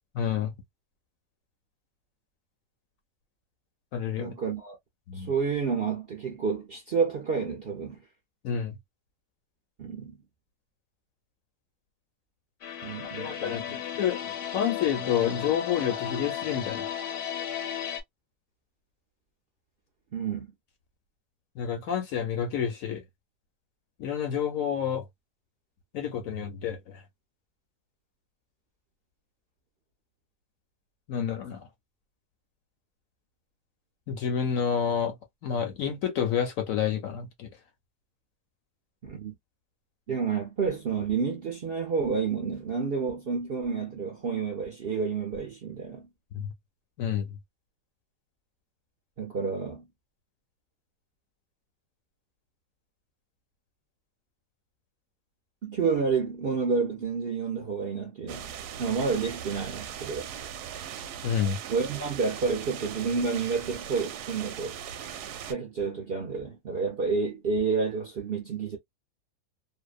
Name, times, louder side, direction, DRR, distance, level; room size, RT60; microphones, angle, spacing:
voice 1, 0.2-0.5 3.9-4.3 5.1-5.3 8.4-8.7 13.2-16.9 21.6-23.0 24.0-25.0 25.9-26.8 31.1-31.7 34.1-35.1 35.4-37.5 46.3-46.5 47.0-47.3 61.2-61.6, left 8 dB, 65° left, 0.9 m, -29 dB
voice 2, 4.2-4.8 5.1-8.0 9.8-10.2 12.8-13.7 20.1-20.5 39.0-39.3 40.1-46.1 49.2-49.9 55.6-58.5 58.8-60.3 61.7-64.8 65.4-68.8, right 5 dB, 55° right, 0.6 m, -30 dB
sound 1, 12.6-18.0, left 9 dB, 80° left, 1.2 m, -35 dB
sound 2, 58.3-65.5, right 9 dB, 75° right, 1.0 m, -39 dB
2.7 x 2.1 x 2.3 m
omnidirectional pair, 1.8 m